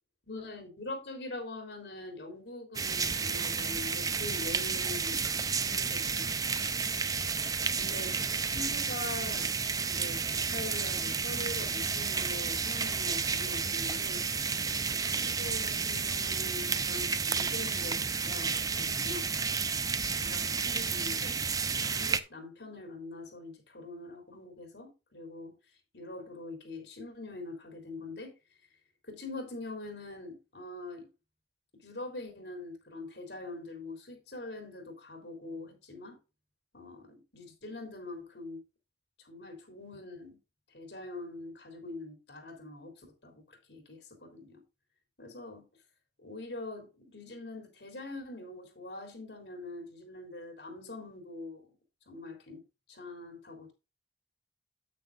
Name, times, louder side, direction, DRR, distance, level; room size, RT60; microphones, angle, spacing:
voice 1, 0.3-5.3 5.5-6.7 7.8-9.5 9.9-14.3 14.9-19.3 20.1-21.4 21.8-25.5 25.9-28.4 29.1-31.1 31.7-36.2 36.7-38.6 39.2-40.4 40.7-44.6 45.2-45.7 46.2-51.7 52.1-52.6 52.9-53.7, left 2 dB, 80° left, 3.7 m, -44 dB
sound 1, 2.7-22.2, right 5 dB, 20° right, 0.5 m, -31 dB
9.2 x 9.2 x 2.5 m
head